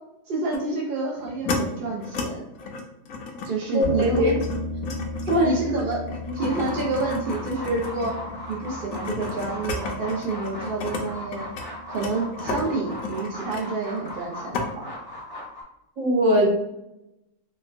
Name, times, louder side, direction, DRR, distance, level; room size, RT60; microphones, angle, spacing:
voice 1, 0.3-2.4 3.5-4.2 5.3-6.0 6.3-8.1 8.5-11.5 11.8-14.9, right 3 dB, 60° right, -3 dB, 0.6 m, -28 dB
sound 1, 0.5-0.7 1.2-1.6 2.0-2.3 2.6-11.0 11.3-14.2 14.5-14.7, left 4 dB, 75° left, 1.0 m, -33 dB
voice 2, 3.7-4.3 5.3-5.5 6.2-6.4 16.0-16.7, equal, 40° right, -3 dB, 1.0 m, -21 dB
sound 2, 3.8-13.3, left 1 dB, 90° right, 1.8 m, -36 dB
sound 3, 6.3-15.6, left 1 dB, 25° left, 0.6 m, -38 dB
4.4 x 2.2 x 2.5 m, 0.88 s
omnidirectional pair, 1.5 m